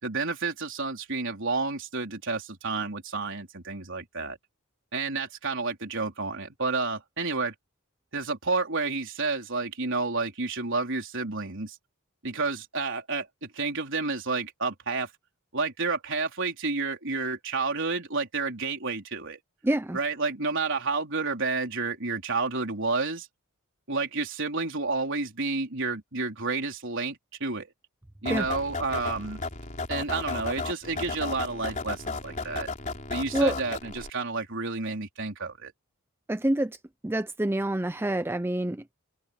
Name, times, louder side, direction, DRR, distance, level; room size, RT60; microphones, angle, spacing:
voice 1, 0.0-4.4 4.9-7.5 8.1-11.8 12.2-15.1 15.5-19.4 19.9-23.3 23.9-27.7 28.2-29.4 29.9-32.7 33.1-35.7, right 3 dB, 60° right, 4.2 m, -30 dB
voice 2, 19.6-20.0 28.3-28.5 33.3-33.5 36.3-36.8 37.0-38.9, right 1 dB, 10° right, 0.5 m, -27 dB
sound 1, 28.2-34.1, left 3 dB, 35° left, 3.9 m, -34 dB
open air
head